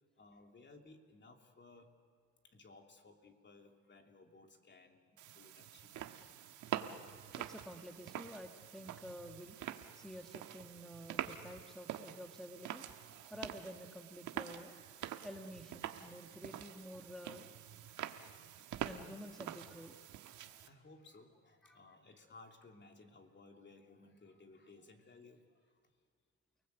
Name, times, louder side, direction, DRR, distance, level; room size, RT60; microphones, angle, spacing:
voice 1, 0.2-1.9 2.4-6.1 7.7-7.8 18.2-18.9 20.6-25.8, left 3 dB, 35° left, 3 dB, 2.9 m, -60 dB
sound 1, 5.2-20.7, right 11 dB, 80° right, 1.4 m, -46 dB
voice 2, 7.4-9.6 9.9-12.8 13.3-14.8 15.2-17.5 18.8-20.6 21.6-21.9, equal, ahead, 4 dB, 1.7 m, -50 dB
29.5 x 19.5 x 8.2 m, 2.1 s
cardioid pair, 90°, 30 cm